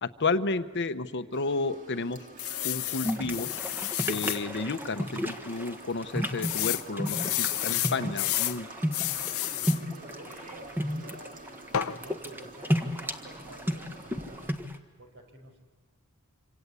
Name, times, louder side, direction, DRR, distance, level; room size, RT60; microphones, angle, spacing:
voice 1, 0.0-2.2 2.6-3.5 4.0-8.7, left 3 dB, 55° left, 10 dB, 1.0 m, -31 dB
sound 1, 1.3-14.5, right 2 dB, 40° right, 2.1 m, -48 dB
sound 2, 2.4-4.4 4.9-5.0 5.3-5.4 6.4-8.6 8.9-9.8 11.7-12.0, left 14 dB, 80° left, 0.8 m, -30 dB
sound 3, 3.0-14.8, equal, 10° right, 1.4 m, -33 dB
voice 2, 8.8-11.4 11.9-14.6 15.0-15.6, right 1 dB, 60° right, 5 dB, 5.4 m, -51 dB
27.0 x 26.0 x 8.3 m, 1.4 s
head